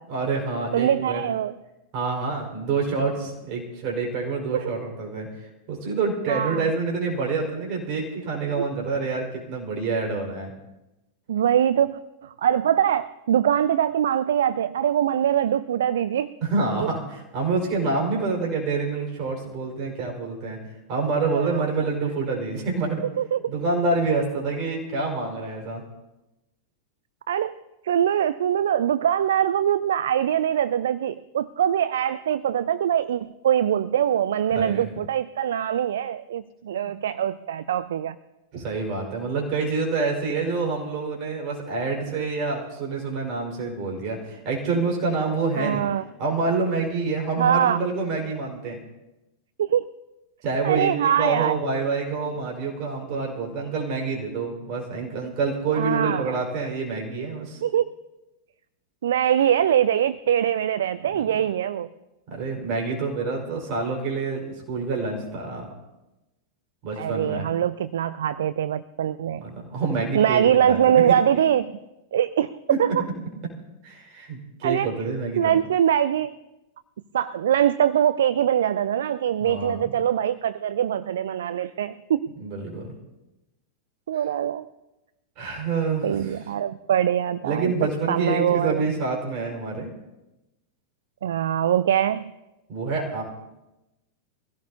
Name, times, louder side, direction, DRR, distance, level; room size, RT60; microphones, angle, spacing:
voice 1, 0.1-1.2 1.9-10.5 16.4-20.6 20.9-23.0 23.5-25.8 34.5-34.9 36.8-36.9 38.5-45.9 46.2-48.8 50.4-57.6 61.1-61.3 62.3-65.7 66.8-67.5 69.4-70.8 71.1-71.4 72.7-73.0 73.8-75.6 79.4-79.9 82.4-82.9 85.4-86.4 87.4-89.9 92.7-93.2, right 4 dB, 40° right, 0 dB, 4.9 m, -27 dB
voice 2, 0.7-1.6 4.5-4.7 6.3-6.7 8.6-8.7 11.3-16.4 21.3-21.7 23.2-23.4 27.3-27.5 27.8-38.2 45.6-46.0 47.4-47.8 49.6-49.8 50.6-51.5 55.7-56.3 57.6-57.9 59.0-61.9 67.0-69.4 70.1-71.7 72.1-73.0 74.6-74.9 75.4-76.4 77.1-82.3 84.1-84.7 86.0-87.7 88.1-88.8 91.2-92.3, right 10 dB, 60° right, 16 dB, 0.4 m, -23 dB
23.0 x 16.5 x 2.8 m, 0.98 s
figure-of-eight pair, 90°, 0 cm